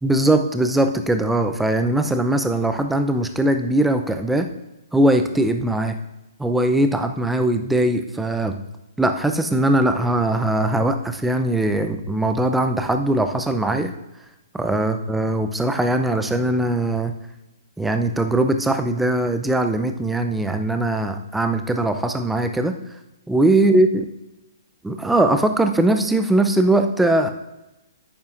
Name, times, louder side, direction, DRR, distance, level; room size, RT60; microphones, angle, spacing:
voice 1, 0.0-4.5 4.9-6.0 6.4-8.6 9.0-13.9 14.5-17.1 17.8-22.7 23.3-24.0 24.8-27.3, right 1 dB, 5° right, 7 dB, 0.6 m, -20 dB
11.0 x 9.1 x 2.6 m, 0.99 s
hypercardioid pair, 140°, 2 cm